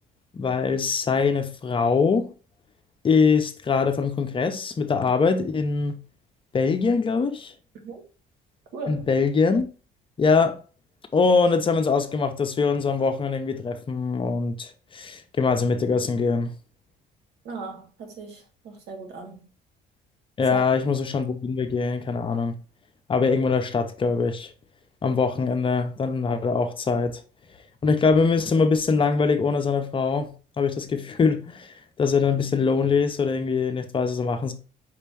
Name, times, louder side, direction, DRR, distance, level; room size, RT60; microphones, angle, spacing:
voice 1, 0.3-2.3 3.0-6.0 6.5-7.5 8.9-9.6 10.2-10.6 11.1-16.5 20.4-22.5 23.1-24.5 25.0-27.2 27.8-34.5, left 4 dB, 30° left, 0.7 m, -23 dB
voice 2, 8.7-9.1 17.4-19.4 20.5-20.7, right 3 dB, 80° right, 1.4 m, -36 dB
5.3 x 2.8 x 3.5 m
cardioid pair, 110°, 17 cm